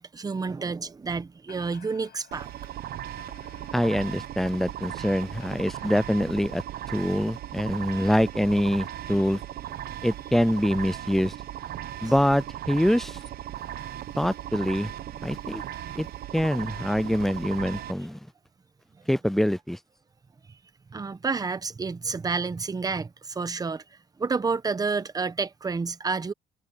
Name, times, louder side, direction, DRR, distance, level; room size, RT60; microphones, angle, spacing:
voice 1, 0.0-2.5 9.8-10.0 15.7-16.0 20.9-23.8 24.2-26.3, right 4 dB, 20° right, 1.1 m, -30 dB
sound 1, 1.0-1.1 1.5-6.2, left 13 dB, 70° left, 6.2 m, -55 dB
sound 2, 2.3-17.9, right 12 dB, 65° right, 1.0 m, -37 dB
voice 2, 3.7-6.6 6.9-9.4 10.0-11.3 12.0-13.2 14.2-14.9 15.2-15.6 16.0-16.1 16.3-18.2 19.1-19.8, equal, ahead, 0.5 m, -25 dB
cardioid pair, 110°, 17 cm